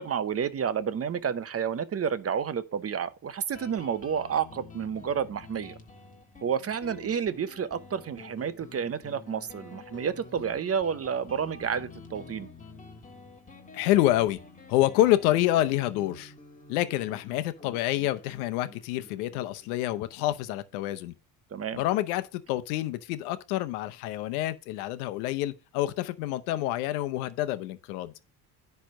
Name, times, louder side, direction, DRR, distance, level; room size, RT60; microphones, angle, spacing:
voice 1, 0.0-5.8 6.4-12.5 21.5-21.8, right 7 dB, 35° right, 0.8 m, -30 dB
Guitar, 3.5-20.7, left 3 dB, 20° left, 1.7 m, -49 dB
voice 2, 13.7-14.4 14.7-16.3 16.7-21.1 21.7-28.1, left 14 dB, 90° left, 0.9 m, -27 dB
10.5 x 3.4 x 6.3 m
supercardioid pair, 85°, 43 cm